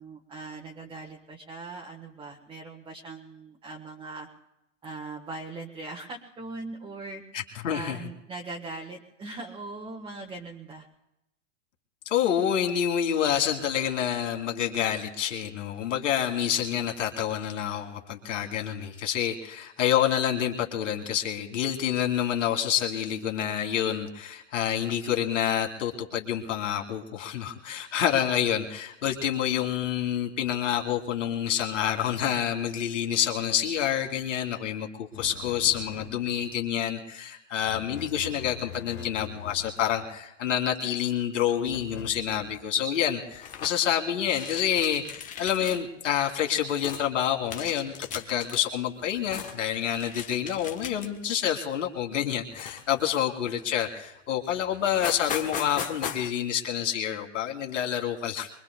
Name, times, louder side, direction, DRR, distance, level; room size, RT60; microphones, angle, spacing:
voice 1, 0.0-4.3 4.8-7.2 7.7-10.9, right 3 dB, 15° right, -1 dB, 1.4 m, -40 dB
voice 2, 7.6-8.0 12.1-58.6, left 9 dB, 75° left, 3 dB, 2.6 m, -28 dB
sound 1, 35.1-36.7 37.6-40.2 41.6-42.7, left 10 dB, 45° left, 1.8 m, -44 dB
sound 2, 43.3-43.9 44.3-45.8 46.1-47.1 47.5-48.6 49.0-49.6 49.9-51.2 51.7-51.9 52.5-53.5 54.1-54.2 54.5-54.6 54.8-56.3, left 8 dB, 20° left, 1.1 m, -38 dB
23.5 x 23.0 x 2.3 m, 0.85 s
hypercardioid pair, 135°, 38 cm